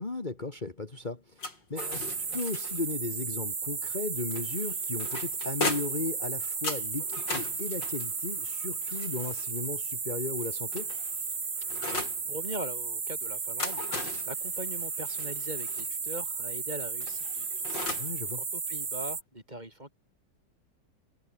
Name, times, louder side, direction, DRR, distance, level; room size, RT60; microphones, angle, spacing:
voice 1, 0.0-1.4 1.7-10.9 18.0-18.4, left 3 dB, 25° left, 2.2 m, -36 dB
sound 1, 1.4-3.0 4.3-6.1 6.6-9.6 10.4-12.2 13.3-15.9 17.0-18.2, left 3 dB, 80° left, 6.6 m, -38 dB
sound 2, 1.8-19.2, right 5 dB, 60° right, 3.3 m, -34 dB
voice 2, 12.3-18.1 18.3-19.9, right 1 dB, 25° right, 5.2 m, -41 dB
omnidirectional pair, 1.9 m